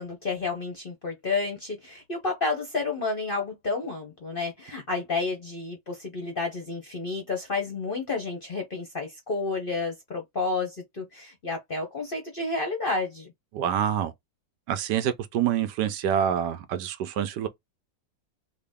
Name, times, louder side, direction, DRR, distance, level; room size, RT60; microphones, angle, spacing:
voice 1, 0.0-13.3, left 3 dB, 45° left, 0.7 m, -30 dB
voice 2, 13.5-14.1 14.7-17.5, right 9 dB, 80° right, 1.2 m, -26 dB
3.8 x 2.3 x 3.4 m
omnidirectional pair, 1.9 m